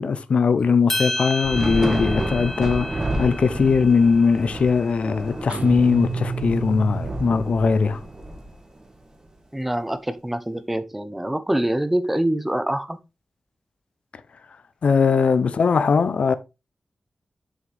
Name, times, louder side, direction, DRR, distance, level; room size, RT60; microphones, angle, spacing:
voice 1, 0.0-8.0 14.8-16.3, left 5 dB, 70° left, 0.6 m, -20 dB
sound 1, 0.9-5.3, left 1 dB, 15° left, 1.6 m, -32 dB
Thunder / Rain, 1.4-9.0, right 1 dB, 30° right, 1.7 m, -30 dB
Guitar, 5.5-8.1, right 5 dB, 70° right, 0.4 m, -31 dB
voice 2, 9.5-13.0, right 1 dB, 10° right, 0.8 m, -25 dB
7.3 x 6.3 x 3.4 m
wide cardioid pair, 140°, 2 cm